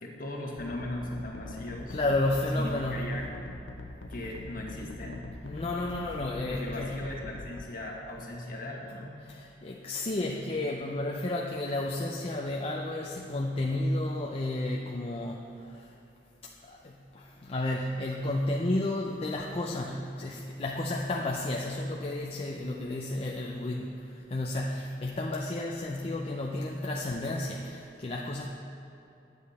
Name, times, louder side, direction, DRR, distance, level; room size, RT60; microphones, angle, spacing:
voice 1, 0.0-2.0 2.5-3.3 4.1-5.3 6.5-9.2, left 1 dB, 50° left, -1 dB, 1.5 m, -38 dB
sound 1, 0.6-7.7, left 2 dB, 80° left, 0.7 m, -43 dB
voice 2, 1.9-3.1 5.4-7.0 9.2-15.9 16.6-28.5, left 1 dB, 35° left, -1 dB, 0.5 m, -32 dB
10.0 x 8.2 x 4.2 m, 2.8 s
head